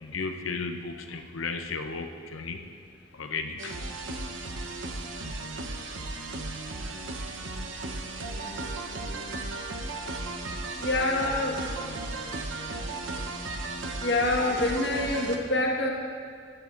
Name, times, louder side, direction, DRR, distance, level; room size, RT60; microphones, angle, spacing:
voice 1, 0.0-2.7 3.2-3.7, left 4 dB, 80° left, 6 dB, 0.7 m, -34 dB
sound 1, 3.6-15.4, right 2 dB, 70° right, 0.9 m, -35 dB
voice 2, 10.8-11.6 14.0-15.9, left 2 dB, 55° left, 0 dB, 1.4 m, -26 dB
15.0 x 12.0 x 2.5 m, 2.2 s
head